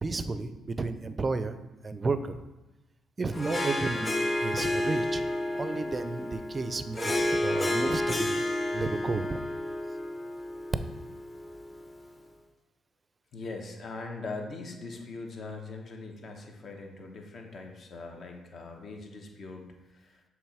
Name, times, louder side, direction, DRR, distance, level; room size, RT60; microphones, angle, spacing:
voice 1, 0.0-1.6 1.8-2.4 3.2-5.2 5.5-8.4 8.7-9.4, right 3 dB, 30° right, 11 dB, 0.4 m, -32 dB
Harp, 3.3-12.0, left 1 dB, 25° left, 0.8 m, -31 dB
voice 2, 13.3-20.2, left 3 dB, 55° left, 2 dB, 1.0 m, -41 dB
7.0 x 3.1 x 4.9 m, 1.1 s
cardioid pair, 90°, 0 cm